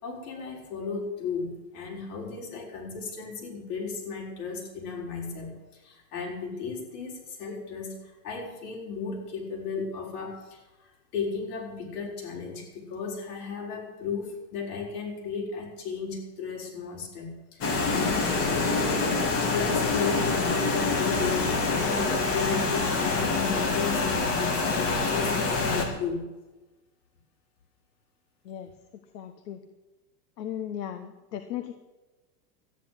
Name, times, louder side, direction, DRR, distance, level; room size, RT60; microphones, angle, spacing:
voice 1, 0.0-26.3, left 5 dB, 65° left, -1 dB, 6.0 m, -35 dB
sound 1, 17.6-25.9, left 3 dB, 30° left, 2.8 m, -26 dB
voice 2, 29.1-29.6 30.4-31.7, left 10 dB, 85° left, 8 dB, 1.4 m, -36 dB
13.0 x 10.5 x 7.9 m, 1.1 s
supercardioid pair, 150°, 47 cm